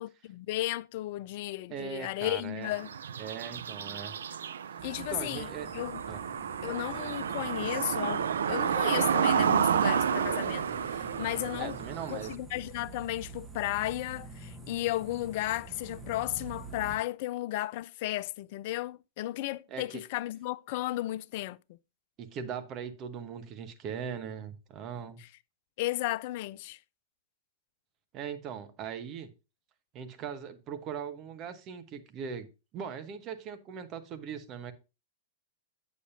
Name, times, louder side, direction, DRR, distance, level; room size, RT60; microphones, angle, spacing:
voice 1, 0.0-2.9 4.8-6.0 6.6-11.8 12.1-21.6 25.8-26.8, left 16 dB, 55° left, 0.3 m, -34 dB
voice 2, 1.7-2.7 3.2-4.2 5.0-5.7 6.1-6.2 11.6-12.3 19.7-20.0 22.2-25.2 28.1-29.3 29.9-32.5 32.7-34.7, right 7 dB, 40° right, 1.1 m, -40 dB
sound 1, 2.7-12.3, right 8 dB, 75° right, 0.4 m, -30 dB
sound 2, 4.8-17.0, right 3 dB, 15° right, 1.3 m, -47 dB
8.3 x 7.2 x 2.7 m
hypercardioid pair, 105°, 0 cm